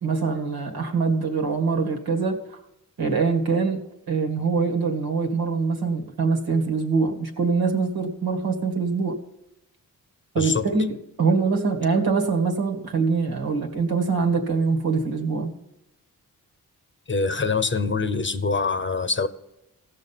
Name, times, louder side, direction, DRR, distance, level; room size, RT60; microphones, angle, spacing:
voice 1, 0.0-2.4 3.0-9.2 10.3-15.5, right 4 dB, 80° right, 1.9 m, -24 dB
voice 2, 10.4-10.7 17.1-19.3, left 4 dB, 30° left, 0.8 m, -24 dB
16.0 x 6.5 x 5.7 m
cardioid pair, 75°, 36 cm